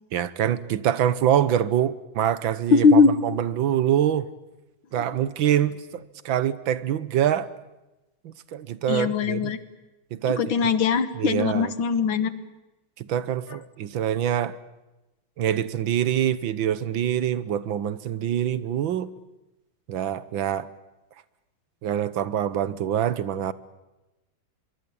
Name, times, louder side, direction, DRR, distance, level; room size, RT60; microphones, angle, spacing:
voice 1, 0.1-4.3 4.9-7.5 8.2-9.5 10.1-10.4 11.2-11.7 13.0-14.6 15.4-19.1 19.9-20.7 21.8-23.5, right 10 dB, 80° right, 16 dB, 1.8 m, -25 dB
voice 2, 2.7-3.1 8.9-9.6 10.3-12.3, left 5 dB, 85° left, 13 dB, 2.2 m, -20 dB
24.5 x 23.5 x 8.7 m, 1.0 s
omnidirectional pair, 2.1 m